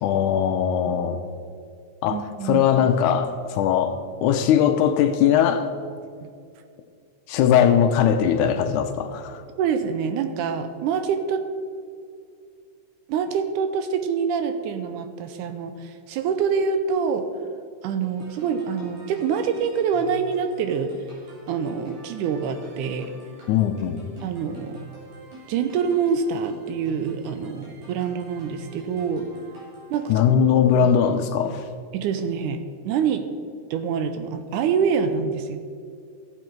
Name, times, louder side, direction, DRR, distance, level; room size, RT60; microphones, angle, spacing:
voice 1, 0.0-1.2 2.0-5.7 7.3-9.4 23.5-24.2 30.1-31.6, left 8 dB, 80° left, 8 dB, 2.0 m, -20 dB
voice 2, 2.1-2.7 9.6-11.5 13.1-17.3 17.8-21.0 21.5-23.1 24.2-24.8 25.5-29.3 29.9-30.2 30.8-30.9 31.9-33.3 33.7-35.6, right 6 dB, 80° right, 9 dB, 2.0 m, -25 dB
sound 1, 18.0-30.3, right 1 dB, 65° right, 4.8 m, -44 dB
15.5 x 7.3 x 4.5 m, 2.2 s
omnidirectional pair, 3.7 m